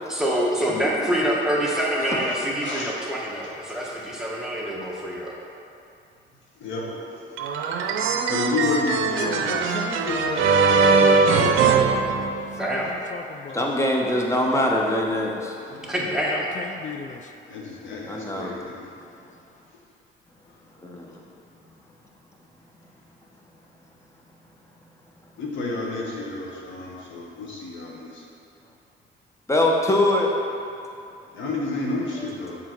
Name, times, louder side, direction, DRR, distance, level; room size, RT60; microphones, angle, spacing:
voice 1, 0.1-5.3 12.6-12.9 15.8-16.5, equal, 5° right, -5 dB, 1.3 m, -26 dB
voice 2, 2.3-2.9 6.6-7.2 8.3-9.5 15.6-15.9 17.5-18.9 25.4-28.2 31.3-32.6, left 3 dB, 70° left, -3 dB, 1.3 m, -30 dB
sound 1, 7.4-12.8, right 4 dB, 80° right, 0.5 m, -21 dB
voice 3, 9.2-11.7 12.5-13.7 16.0-17.3, left 5 dB, 40° left, 5 dB, 0.4 m, -36 dB
voice 4, 13.5-15.8 18.1-18.6 20.8-21.1 29.5-30.3, left 1 dB, 15° left, -1 dB, 0.9 m, -23 dB
6.9 x 3.7 x 4.5 m, 2.6 s
cardioid pair, 90°, 20 cm